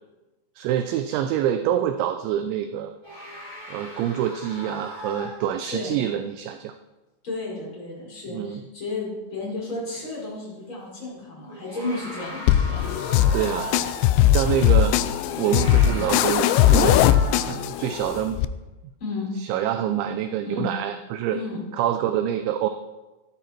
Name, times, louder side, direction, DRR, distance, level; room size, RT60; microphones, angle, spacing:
voice 1, 0.6-2.9 3.7-6.7 8.3-8.6 13.3-13.7 14.3-17.1 17.4-18.4 19.4-21.4 21.8-22.7, right 10 dB, 80° right, 8 dB, 2.8 m, -26 dB
sound 1, 3.0-5.8 10.0-10.2 11.5-14.1 15.2-17.7, left 1 dB, 20° right, 6.1 m, -37 dB
voice 2, 5.6-6.0 7.2-13.2 19.0-19.3 20.5-20.7 21.3-21.6, left 2 dB, 25° left, -5 dB, 5.6 m, -33 dB
sound 2, 12.5-18.5, left 11 dB, 85° left, 2.6 m, -20 dB
15.5 x 13.0 x 4.5 m, 1.1 s
omnidirectional pair, 5.6 m